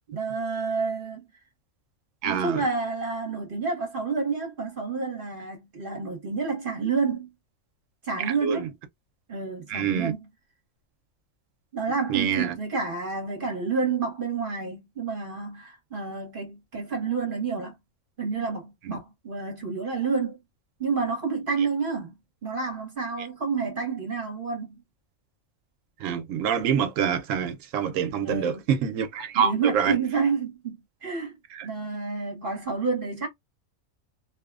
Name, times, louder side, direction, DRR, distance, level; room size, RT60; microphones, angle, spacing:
voice 1, 0.1-1.2 2.2-7.3 8.0-8.7 9.3-10.3 11.7-17.8 18.2-20.4 20.8-22.1 22.4-24.8 28.2-28.6 29.3-31.3 31.6-33.3, right 5 dB, 45° right, 1.0 m, -29 dB
voice 2, 2.2-2.6 8.2-8.7 9.7-10.1 12.1-12.5 18.9-19.0 26.0-29.9 31.5-31.7, right 8 dB, 80° right, 1.0 m, -26 dB
2.9 x 2.1 x 2.3 m
omnidirectional pair, 1.3 m